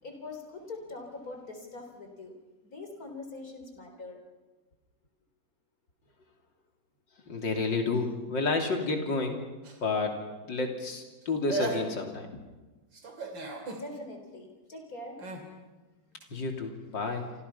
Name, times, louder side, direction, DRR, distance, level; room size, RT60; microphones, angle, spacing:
voice 1, 0.0-2.4 2.6-4.2 13.7-16.5, left 2 dB, 50° left, 4 dB, 4.2 m, -44 dB
voice 2, 7.3-9.5 9.8-10.2 10.4-12.4 16.3-17.3, left 3 dB, 80° left, 3 dB, 3.8 m, -30 dB
sound 1, 9.6-10.3 11.2-11.3 11.5-12.2 12.9-13.9 15.2-15.5 16.2-16.3, right 2 dB, 85° right, 3.7 m, -36 dB
28.5 x 26.5 x 5.7 m, 1.2 s
omnidirectional pair, 2.0 m